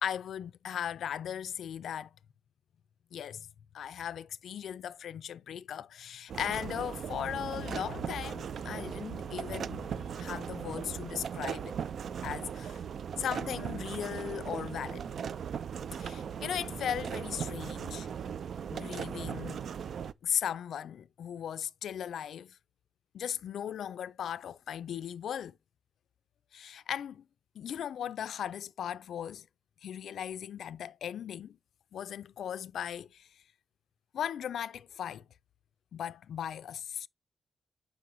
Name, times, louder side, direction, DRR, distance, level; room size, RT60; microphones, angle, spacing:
voice 1, 0.0-2.1 3.1-3.5 3.7-11.7 12.2-12.8 13.2-15.0 16.0-18.1 18.7-19.6 20.2-22.6 23.1-25.5 26.5-27.2 27.6-29.5 29.8-31.6 31.9-33.3 34.1-35.2 35.9-37.1, left 9 dB, 90° left, 0.3 m, -37 dB
sound 1, 6.3-20.1, right 7 dB, 70° right, 0.3 m, -38 dB
7.5 x 5.4 x 2.6 m
wide cardioid pair, 115°, 0 cm